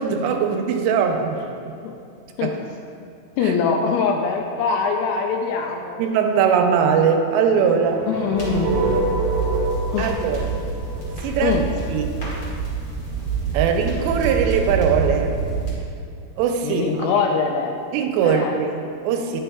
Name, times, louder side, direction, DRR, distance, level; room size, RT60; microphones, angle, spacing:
voice 1, 0.0-1.4 2.4-2.5 3.4-3.5 6.0-8.1 10.0-10.5 11.2-11.6 11.9-12.2 13.5-15.3 16.4-17.1 17.9-19.4, right 7 dB, 85° right, 4 dB, 2.8 m, -21 dB
voice 2, 3.4-6.0 8.1-8.8 9.9-10.1 11.4-11.7 16.6-17.8 18.2-18.6, left 5 dB, 85° left, 2 dB, 2.4 m, -23 dB
sound 1, 7.8-11.8, right 1 dB, 65° right, 1.9 m, -27 dB
sound 2, 8.3-15.7, right 5 dB, 55° left, 1.0 m, -26 dB
10.0 x 6.3 x 2.3 m, 2.5 s
omnidirectional pair, 5.0 m